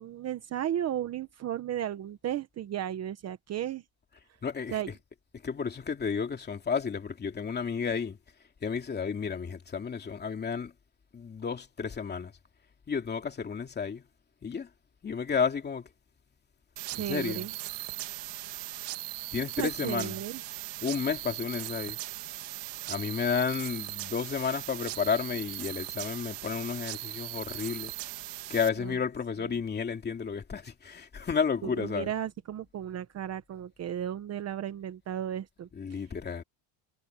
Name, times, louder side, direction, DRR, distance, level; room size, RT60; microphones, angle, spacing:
voice 1, 0.0-3.8 4.7-4.9 16.9-17.5 19.6-20.4 28.8-28.9 31.6-36.0, right 10 dB, 35° right, 0.9 m, -34 dB
voice 2, 4.4-4.8 5.3-8.2 8.6-10.7 11.1-12.3 12.9-14.0 14.4-14.7 15.0-15.9 17.0-17.5 19.3-20.2 20.8-22.0 22.9-27.9 28.5-32.2 35.7-36.4, left 6 dB, 20° left, 2.6 m, -32 dB
sound 1, 16.8-28.7, right 17 dB, 60° right, 2.0 m, -39 dB
cardioid pair, 165°, 47 cm